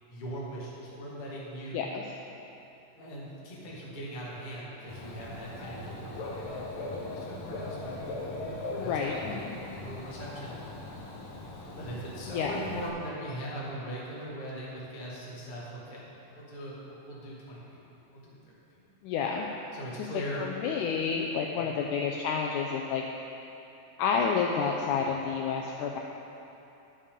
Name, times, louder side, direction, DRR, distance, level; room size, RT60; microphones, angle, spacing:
voice 1, 0.1-1.8 3.0-10.5 11.7-16.1 16.3-17.8 18.1-18.5 19.7-20.4 21.5-21.7, right 1 dB, 25° left, -6 dB, 0.9 m, -40 dB
Dog / Bird, 4.9-12.9, left 2 dB, 65° left, 2.2 m, -40 dB
voice 2, 8.8-9.5 12.3-12.6 19.0-19.5 20.4-23.0 24.0-26.0, left 6 dB, 85° left, 1 dB, 1.8 m, -30 dB
11.0 x 9.8 x 3.7 m, 3.0 s
omnidirectional pair, 4.0 m